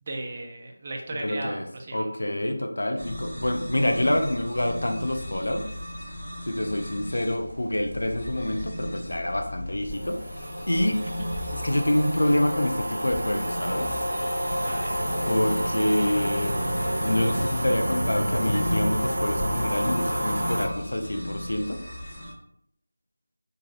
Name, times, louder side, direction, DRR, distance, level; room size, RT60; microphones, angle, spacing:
voice 1, 0.0-2.1 14.5-15.0, right 2 dB, 25° right, 0 dB, 0.3 m, -36 dB
voice 2, 1.1-1.7 1.9-5.6 6.5-10.2 10.7-11.0 11.5-13.9 15.3-16.6 17.0-21.8, left 1 dB, 70° left, 5 dB, 0.4 m, -26 dB
sound 1, 3.0-22.3, left 1 dB, 20° left, 0.7 m, -37 dB
sound 2, 9.9-20.7, equal, 80° right, 0.5 m, -29 dB
2.3 x 2.0 x 2.7 m, 0.74 s
figure-of-eight pair, 170°, 0 cm